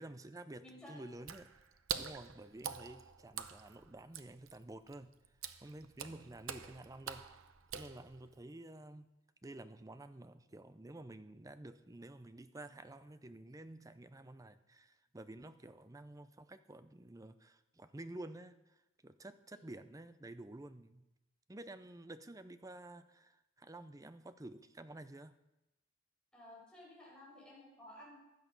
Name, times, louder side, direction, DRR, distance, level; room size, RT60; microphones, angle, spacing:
voice 1, 0.0-1.5 1.9-5.1 5.6-7.2 7.7-9.1 9.4-21.0 21.5-25.4, right 1 dB, 15° right, 11 dB, 0.5 m, -51 dB
voice 2, 0.6-1.0 6.0-6.1 19.5-19.7 26.3-28.2, left 1 dB, 5° left, -4 dB, 5.2 m, -55 dB
Water / Splash splatter, 1.2-8.4, right 8 dB, 90° right, 0.8 m, -46 dB
15.5 x 10.5 x 5.3 m, 0.97 s
head